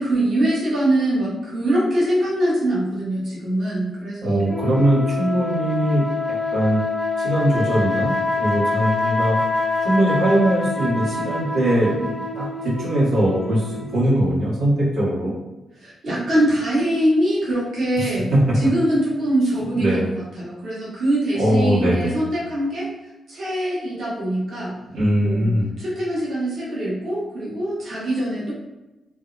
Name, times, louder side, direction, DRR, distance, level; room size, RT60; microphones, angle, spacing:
voice 1, 0.0-4.4 15.8-22.9 23.3-24.8 25.2-28.5, right 1 dB, 70° right, -7 dB, 1.0 m, -23 dB
voice 2, 4.2-6.8 7.2-9.4 9.8-12.1 12.3-12.5 12.8-15.3 18.0-18.1 19.7-20.0 21.4-22.1 24.9-25.7, right 1 dB, 90° right, -9 dB, 1.2 m, -21 dB
sound 1, 4.5-14.2, left 3 dB, 5° left, 0.4 m, -25 dB
2.6 x 2.1 x 2.5 m, 1.0 s
cardioid pair, 55°, 0 cm